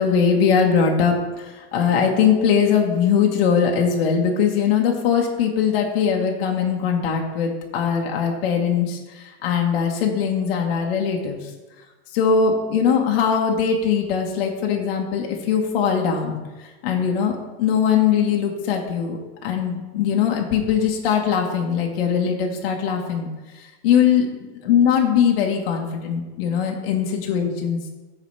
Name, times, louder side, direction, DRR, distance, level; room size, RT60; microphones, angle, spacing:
voice 1, 0.0-11.5 12.1-23.3 23.6-27.9, left 7 dB, 60° left, 1 dB, 1.5 m, -21 dB
14.0 x 4.9 x 3.3 m, 1.2 s
supercardioid pair, 170°, 32 cm